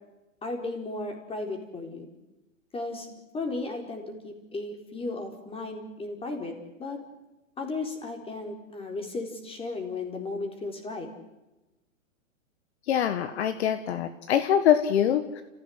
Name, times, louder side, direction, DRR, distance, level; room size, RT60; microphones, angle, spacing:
voice 1, 0.4-2.1 2.7-3.1 3.3-6.5 6.8-7.0 7.6-11.1, left 3 dB, 15° left, 4 dB, 4.5 m, -35 dB
voice 2, 12.9-15.4, left 9 dB, 55° left, 10 dB, 1.7 m, -24 dB
29.5 x 16.0 x 8.0 m, 1.1 s
hypercardioid pair, 125°, 39 cm